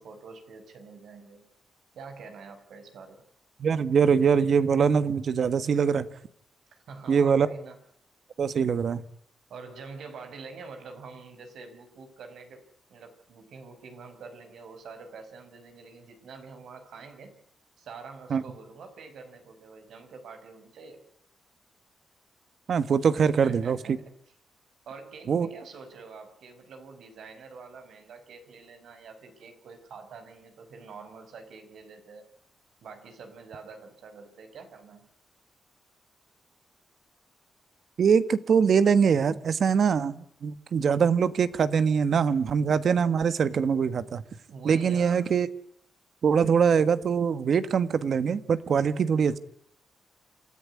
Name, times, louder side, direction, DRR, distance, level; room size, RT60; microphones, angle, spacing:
voice 1, 0.0-1.5 1.9-3.3 6.7-7.8 9.5-12.6 12.9-17.4 17.8-21.0 23.4-23.9 24.9-32.2 32.8-35.1 44.5-45.3, right 4 dB, 85° right, 7 dB, 5.6 m, -46 dB
voice 2, 3.6-6.1 7.1-7.5 8.4-9.0 18.3-18.4 22.7-23.8 25.3-25.5 38.0-44.2 44.6-45.5 46.2-49.4, right 6 dB, 60° right, 14 dB, 1.4 m, -23 dB
27.5 x 14.5 x 9.8 m, 0.69 s
wide cardioid pair, 125°, 0 cm